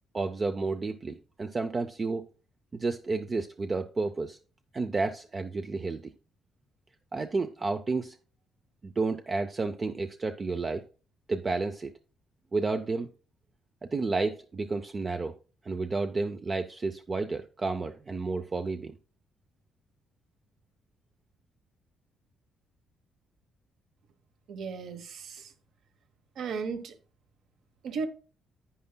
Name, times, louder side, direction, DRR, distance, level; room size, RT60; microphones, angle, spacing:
voice 1, 0.1-2.3 2.7-4.4 4.7-6.1 7.1-8.2 8.8-10.8 11.3-11.9 12.5-13.1 13.8-15.4 15.6-18.9, right 3 dB, 20° right, 0.4 m, -31 dB
voice 2, 24.5-25.5 26.4-26.9 27.8-28.1, right 5 dB, 55° right, 1.0 m, -35 dB
11.0 x 8.7 x 2.2 m
cardioid pair, 170°, 0 cm